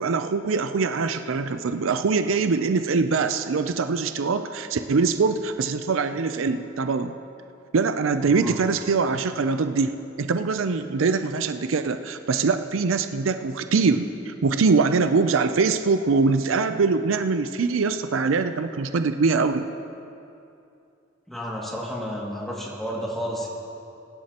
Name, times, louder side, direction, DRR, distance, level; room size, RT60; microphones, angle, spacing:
voice 1, 0.0-7.1 7.7-9.9 10.2-19.7, right 4 dB, 80° right, 10 dB, 0.5 m, -23 dB
voice 2, 8.2-8.5 21.3-23.5, equal, ahead, -4 dB, 2.2 m, -31 dB
23.0 x 10.5 x 2.9 m, 2.7 s
head